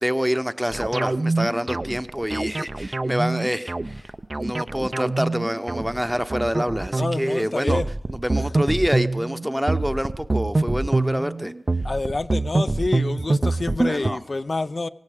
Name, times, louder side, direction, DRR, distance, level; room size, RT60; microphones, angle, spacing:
voice 1, 0.0-7.8 8.1-11.5 13.8-14.2, equal, 5° right, 0.9 m, -26 dB
sound 1, 0.7-14.1, right 2 dB, 40° right, 0.6 m, -25 dB
voice 2, 7.0-7.9 8.4-8.5 11.8-14.9, left 3 dB, 55° left, 0.6 m, -27 dB
17.0 x 15.5 x 5.0 m
cardioid pair, 50°, 0 cm